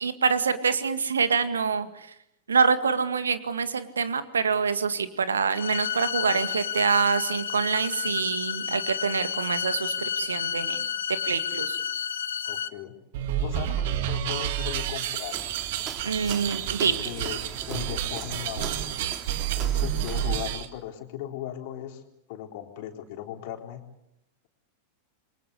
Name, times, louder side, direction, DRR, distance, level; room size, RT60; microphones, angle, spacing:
voice 1, 0.0-1.9 2.5-10.8 11.2-11.8 16.0-17.1, right 5 dB, 70° right, 11 dB, 1.9 m, -26 dB
sound 1, 5.5-12.7, left 8 dB, 65° left, 1.1 m, -31 dB
voice 2, 12.4-12.9 13.4-15.4 16.8-17.4 17.7-18.9 19.6-22.0 22.3-23.8, left 11 dB, 50° left, 4 dB, 3.7 m, -37 dB
sound 2, 13.1-20.7, right 10 dB, 50° right, 2.1 m, -30 dB
Walk footsteps, 15.2-20.5, right 6 dB, 30° right, 3.4 m, -41 dB
28.5 x 23.5 x 8.3 m, 0.81 s
figure-of-eight pair, 90°, 0 cm